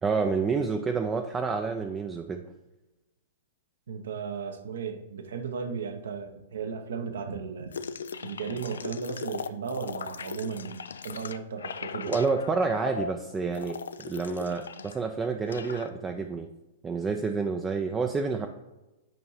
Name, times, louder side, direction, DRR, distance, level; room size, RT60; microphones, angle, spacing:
voice 1, 0.0-2.4 12.1-16.5 16.8-18.5, right 4 dB, 15° right, 4 dB, 0.4 m, -29 dB
voice 2, 3.9-7.7 8.2-12.2, right 6 dB, 65° right, 7 dB, 0.7 m, -35 dB
sound 1, 7.7-15.0 15.2-15.9, left 5 dB, 70° left, 0.3 m, -38 dB
9.1 x 5.4 x 3.1 m, 1.0 s
figure-of-eight pair, 105°, 0 cm